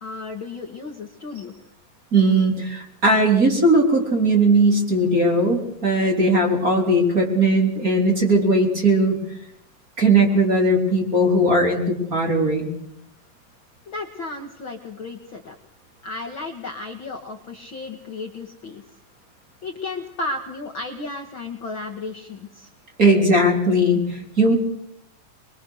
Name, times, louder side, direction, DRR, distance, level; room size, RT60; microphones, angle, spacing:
voice 1, 0.0-1.6 13.9-15.6 16.0-18.8 19.6-22.7, left 3 dB, 45° left, 2 dB, 2.0 m, -33 dB
voice 2, 2.1-9.2 10.0-12.7 23.0-24.6, right 1 dB, 25° right, 2 dB, 3.9 m, -18 dB
23.0 x 22.5 x 6.5 m, 0.75 s
omnidirectional pair, 3.8 m